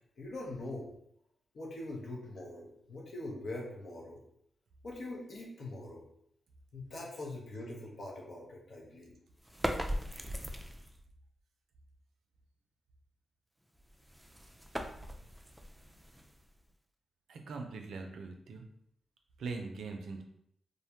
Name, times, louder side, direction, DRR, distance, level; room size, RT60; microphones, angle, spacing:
voice 1, 0.2-0.9 1.5-4.2 4.8-6.0 6.7-9.1, left 2 dB, 65° left, -2 dB, 0.8 m, -43 dB
sound 1, 9.4-11.0 13.7-16.7, equal, 10° right, 0.3 m, -39 dB
voice 2, 17.3-18.6 19.4-20.2, right 4 dB, 80° right, 3 dB, 0.4 m, -41 dB
2.5 x 2.1 x 2.8 m, 0.72 s
supercardioid pair, 45°, 0 cm